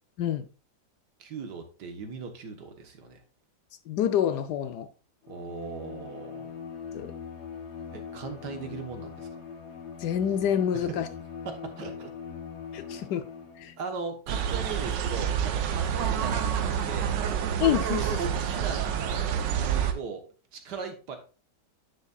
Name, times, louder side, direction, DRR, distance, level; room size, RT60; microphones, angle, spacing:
voice 1, 1.2-3.2 5.3-6.5 7.9-9.3 10.7-11.0 11.5-12.1 12.9-13.0 13.8-17.1 18.0-21.2, right 4 dB, 70° right, 1.8 m, -38 dB
voice 2, 3.9-4.9 6.9-7.1 10.0-11.1 12.7-13.2 13.6-13.7 17.6-18.2, left 10 dB, 70° left, 1.2 m, -27 dB
Bowed string instrument, 5.2-13.8, left 6 dB, 45° left, 1.3 m, -42 dB
sound 1, 14.3-19.9, right 8 dB, 85° right, 1.5 m, -28 dB
9.7 x 6.7 x 2.4 m
omnidirectional pair, 1.9 m